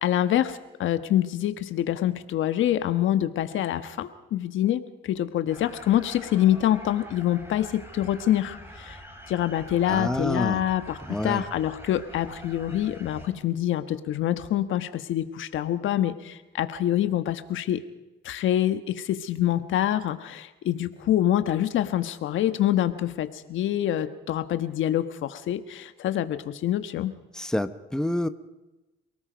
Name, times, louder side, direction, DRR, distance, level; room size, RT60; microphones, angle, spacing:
voice 1, 0.0-9.0 9.3-17.8 18.2-27.1, left 12 dB, 80° left, 10 dB, 1.4 m, -26 dB
sound 1, 5.5-13.3, equal, 10° right, 5.3 m, -45 dB
voice 2, 9.9-10.6 11.0-11.5 27.3-28.3, left 1 dB, 5° left, 10 dB, 1.1 m, -28 dB
28.5 x 18.5 x 5.2 m, 1.0 s
cardioid pair, 90°, 20 cm